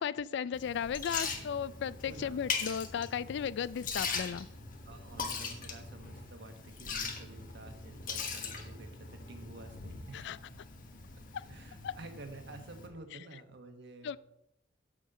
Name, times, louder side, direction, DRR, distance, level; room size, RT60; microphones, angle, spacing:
voice 1, 0.0-4.5 10.1-10.4 11.3-11.4 11.8-11.9 14.0-14.2, left 7 dB, 65° left, 18 dB, 0.3 m, -35 dB
Liquid, 0.5-12.9, left 5 dB, 50° left, 1.4 m, -41 dB
voice 2, 2.0-2.4 4.8-10.3 11.5-14.1, right 2 dB, 65° right, 6 dB, 1.3 m, -50 dB
7.6 x 5.5 x 6.7 m, 0.83 s
head